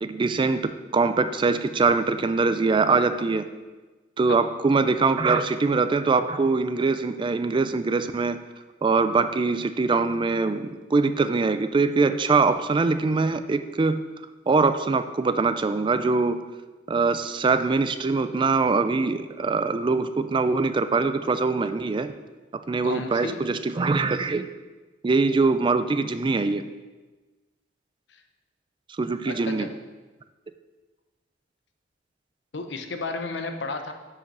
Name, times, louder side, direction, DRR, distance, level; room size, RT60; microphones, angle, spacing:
voice 1, 0.0-3.4 4.2-8.4 8.8-14.0 14.5-16.5 16.9-22.1 22.7-24.5 25.0-26.6 29.0-29.7, right 4 dB, 25° right, 11 dB, 0.3 m, -23 dB
voice 2, 22.8-23.4 28.1-28.2 29.3-29.7 32.5-33.9, left 3 dB, 65° left, 6 dB, 0.8 m, -33 dB
7.0 x 5.5 x 6.0 m, 1.2 s
head